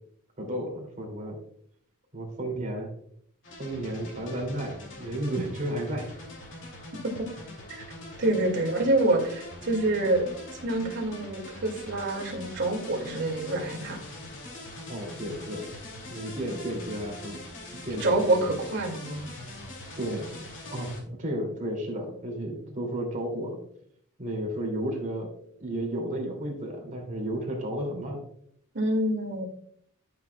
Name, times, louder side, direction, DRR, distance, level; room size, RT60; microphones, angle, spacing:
voice 1, 0.4-1.4 2.1-2.9 3.6-6.1 14.9-15.7 16.1-17.4 17.7-18.5 20.0-20.3 20.7-23.6 24.2-25.3 25.6-28.2, right 1 dB, 35° right, 0 dB, 2.7 m, -33 dB
sound 1, 3.4-21.0, left 1 dB, 60° left, 2.7 m, -43 dB
voice 2, 8.2-10.3 10.6-14.0 18.0-19.3 28.7-29.4, right 2 dB, 55° right, 1 dB, 2.2 m, -26 dB
12.5 x 6.7 x 2.3 m, 0.66 s
head